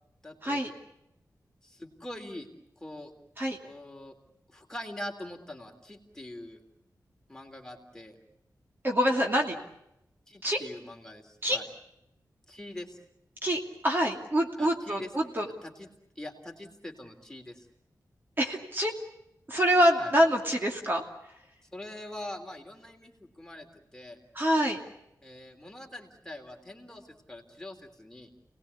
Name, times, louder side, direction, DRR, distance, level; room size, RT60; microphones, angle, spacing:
voice 1, 0.2-0.6 1.6-2.5 2.8-3.1 3.6-4.1 4.5-6.6 7.3-8.2 10.3-11.7 12.5-13.0 14.6-15.1 15.6-15.9 16.1-17.7 20.0-20.1 21.7-24.2 25.2-28.3, left 1 dB, 10° left, 2 dB, 3.4 m, -43 dB
voice 2, 8.8-9.6 10.4-10.6 11.4-11.6 13.4-15.5 18.4-18.9 19.5-21.0 24.3-24.8, equal, 30° right, 1 dB, 2.7 m, -25 dB
28.5 x 19.5 x 8.4 m, 0.82 s
wide cardioid pair, 115°, 7 cm